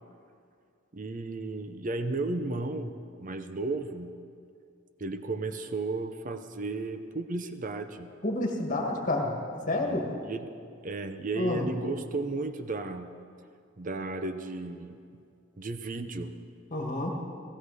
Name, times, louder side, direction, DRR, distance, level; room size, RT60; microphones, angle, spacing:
voice 1, 0.9-2.9 3.2-4.1 5.0-8.1 9.8-10.5 10.8-13.1 13.8-15.2 15.6-16.3, right 2 dB, 40° right, 8 dB, 0.7 m, -34 dB
voice 2, 8.2-9.3 9.7-10.1 11.4-11.7 16.7-17.2, left 2 dB, 40° left, 1 dB, 1.7 m, -29 dB
16.5 x 15.0 x 4.8 m, 2.3 s
head